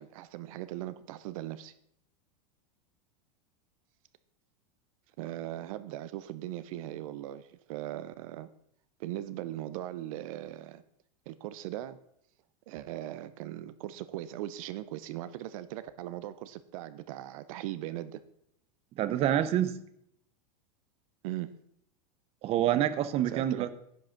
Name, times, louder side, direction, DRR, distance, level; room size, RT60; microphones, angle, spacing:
voice 1, 0.0-1.7 5.2-8.5 9.0-10.8 11.3-12.0 12.7-18.2 21.2-21.5 23.3-23.7, right 14 dB, 60° right, 14 dB, 0.7 m, -39 dB
voice 2, 19.0-19.7 22.4-23.7, right 11 dB, 30° right, 14 dB, 0.7 m, -27 dB
10.5 x 6.2 x 5.8 m, 0.73 s
supercardioid pair, 150°, 19 cm